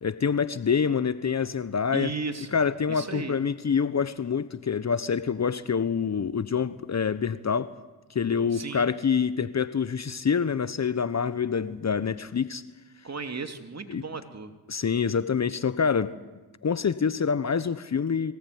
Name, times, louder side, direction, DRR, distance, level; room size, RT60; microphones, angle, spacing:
voice 1, 0.0-2.1 2.5-7.7 8.1-12.6 13.9-14.0 14.7-16.1 16.6-18.3, left 6 dB, 40° left, 14 dB, 1.1 m, -26 dB
voice 2, 1.9-2.6 2.9-3.4 8.5-8.9 13.0-14.5, right 4 dB, 35° right, 7 dB, 3.0 m, -35 dB
24.0 x 18.0 x 9.6 m, 1.2 s
supercardioid pair, 55°, 44 cm